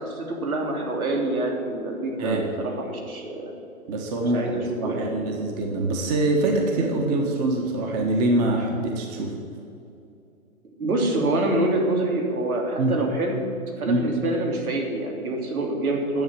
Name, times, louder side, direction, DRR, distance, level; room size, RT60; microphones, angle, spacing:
voice 1, 0.0-3.5 4.2-5.2 10.8-13.4 13.8-16.2, right 2 dB, 85° right, 1 dB, 3.3 m, -26 dB
voice 2, 3.9-9.3 12.8-12.9 13.9-14.0, right 2 dB, 30° right, 1 dB, 1.6 m, -24 dB
11.5 x 7.4 x 9.6 m, 2.6 s
hypercardioid pair, 155°, 42 cm